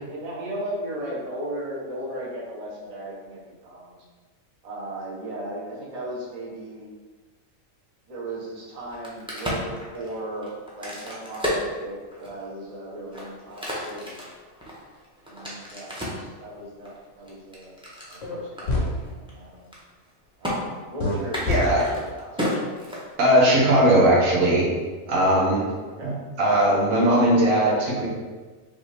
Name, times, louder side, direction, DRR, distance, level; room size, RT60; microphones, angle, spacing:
voice 1, 0.0-4.0 4.6-6.9 8.1-14.2 15.3-17.8 18.1-19.7 20.4-22.5 25.9-26.2, right 1 dB, 35° right, -4 dB, 0.8 m, -36 dB
Crack, 8.8-12.5 13.0-16.3 16.8-18.2 18.6-18.7 19.0-19.3 19.6-20.1 20.4-20.5 21.2-23.4, equal, 5° right, 0.7 m, -32 dB
sound 1, 18.2-18.4 18.7-18.9 21.0-21.2 21.5-21.6, left 3 dB, 65° left, 1.2 m, -24 dB
voice 2, 21.5-21.8 23.2-24.7 25.1-25.6 26.0-26.1 26.4-28.1, right 1 dB, 80° right, -5 dB, 1.5 m, -19 dB
5.4 x 2.6 x 3.3 m, 1.4 s
omnidirectional pair, 1.4 m